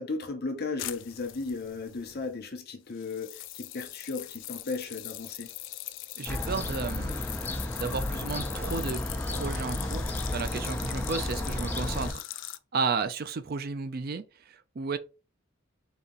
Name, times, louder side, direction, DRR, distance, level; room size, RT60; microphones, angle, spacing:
voice 1, 0.0-5.5, left 3 dB, 50° left, 0.8 m, -35 dB
sound 1, 0.8-2.4 2.9-12.6, left 15 dB, 65° left, 0.4 m, -41 dB
voice 2, 6.2-7.3 7.8-15.0, right 4 dB, 50° right, 0.4 m, -33 dB
Fowl / Gull seagull, 6.3-12.1, left 1 dB, 10° left, 0.6 m, -33 dB
4.1 x 2.9 x 3.6 m
head